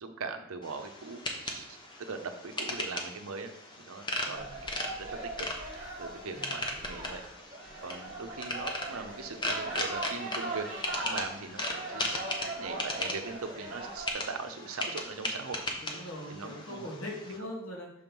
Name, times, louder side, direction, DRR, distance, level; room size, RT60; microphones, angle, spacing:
voice 1, 0.0-3.5 3.8-4.5 5.0-5.5 6.0-7.2 7.8-10.7 11.0-12.2 12.5-15.6 16.3-16.8, right 4 dB, 80° right, 7 dB, 0.7 m, -40 dB
sound 1, 0.6-17.4, left 1 dB, 20° left, 0.7 m, -38 dB
voice 2, 4.2-4.5 6.3-6.6 15.8-17.9, left 1 dB, 75° left, -2 dB, 1.6 m, -41 dB
sound 2, 4.3-14.1, right 2 dB, 30° right, 1.6 m, -40 dB
6.4 x 3.0 x 5.2 m, 0.79 s
head